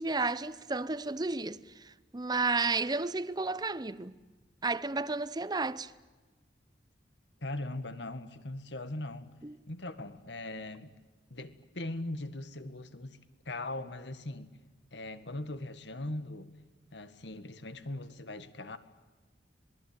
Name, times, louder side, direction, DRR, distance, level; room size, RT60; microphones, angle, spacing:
voice 1, 0.0-1.6 1.8-4.1 4.6-5.9 9.4-9.6, right 3 dB, 25° right, 0.7 m, -32 dB
voice 2, 7.4-9.3 9.7-10.9 11.3-13.2 13.5-14.6 14.9-16.5 16.9-18.8, left 2 dB, 75° left, 1.8 m, -40 dB
26.5 x 20.5 x 8.9 m
head